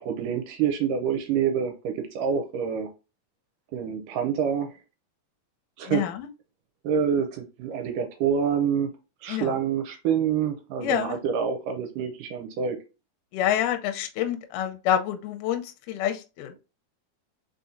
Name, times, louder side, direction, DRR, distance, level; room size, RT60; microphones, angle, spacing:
voice 1, 0.0-2.9 3.7-4.7 5.8-6.0 6.8-8.9 9.2-12.8, right 7 dB, 80° right, 2.1 m, -27 dB
voice 2, 5.9-6.3 9.3-9.5 10.8-11.2 13.3-16.6, left 10 dB, 80° left, 1.9 m, -27 dB
4.8 x 4.2 x 2.6 m
omnidirectional pair, 4.2 m